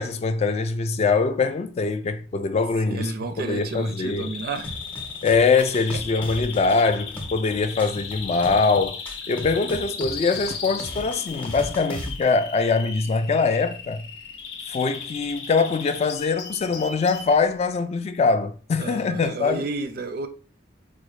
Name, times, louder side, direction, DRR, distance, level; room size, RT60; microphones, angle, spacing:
voice 1, 0.0-3.1 3.4-4.3 5.2-9.0 9.3-14.0 14.7-19.6, left 4 dB, 35° left, 0.3 m, -23 dB
voice 2, 2.8-4.8 9.3-9.6 18.8-20.3, right 3 dB, 55° right, 0.4 m, -32 dB
Bird vocalization bird call bird song, 3.4-17.4, left 6 dB, 85° left, 0.6 m, -37 dB
sound 1, 4.6-12.2, equal, 10° left, 0.7 m, -37 dB
4.3 x 2.1 x 3.0 m
head